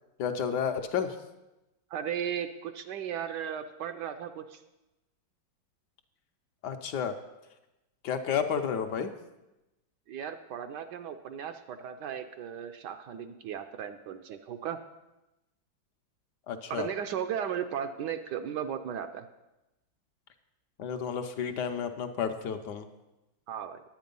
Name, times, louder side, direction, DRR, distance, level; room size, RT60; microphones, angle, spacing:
voice 1, 0.2-1.2 6.6-7.1 8.0-9.1 16.5-16.9 20.8-22.9, left 7 dB, 70° left, 6 dB, 1.2 m, -31 dB
voice 2, 1.9-4.6 10.1-14.8 16.7-19.3 23.5-23.8, right 8 dB, 75° right, 8 dB, 1.1 m, -36 dB
10.5 x 8.6 x 5.3 m, 0.98 s
omnidirectional pair, 2.1 m